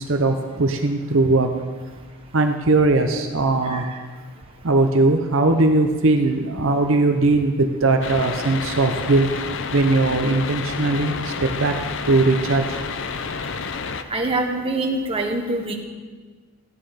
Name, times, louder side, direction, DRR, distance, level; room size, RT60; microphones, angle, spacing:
voice 1, 0.0-1.5 2.3-3.9 4.6-9.4 9.7-11.8 12.1-12.8, right 2 dB, 60° right, 5 dB, 0.8 m, -19 dB
sound 1, 8.0-14.0, left 5 dB, 60° left, 0.7 m, -30 dB
voice 2, 14.1-15.7, right 2 dB, 25° right, 2 dB, 1.3 m, -24 dB
14.5 x 9.8 x 5.1 m, 1.5 s
head